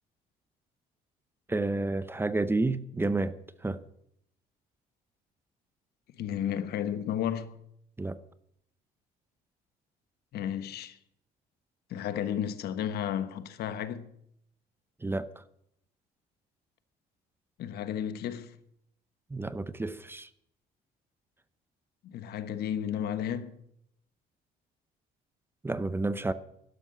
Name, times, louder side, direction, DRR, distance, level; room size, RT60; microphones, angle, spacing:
voice 1, 1.5-3.3 3.6-3.8 8.0-8.2 15.0-15.3 19.3-20.3 25.6-26.3, right 2 dB, 15° right, 0.7 m, -30 dB
voice 2, 6.2-7.6 10.3-11.0 11.9-14.1 17.6-18.6 22.0-23.6, left 9 dB, 70° left, 1.2 m, -33 dB
12.0 x 11.5 x 7.7 m
cardioid pair, 110°, 17 cm